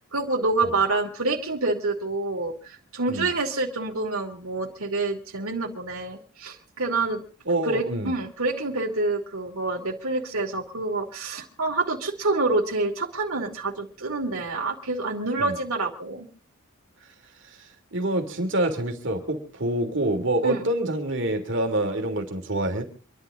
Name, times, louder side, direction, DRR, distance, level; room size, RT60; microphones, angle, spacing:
voice 1, 0.1-7.2 7.6-16.3 20.4-20.6, right 3 dB, 70° right, -1 dB, 2.7 m, -27 dB
voice 2, 7.5-8.1 15.4-15.5 17.6-22.8, right 1 dB, 55° right, 4 dB, 2.9 m, -26 dB
26.5 x 11.5 x 3.8 m, 0.37 s
head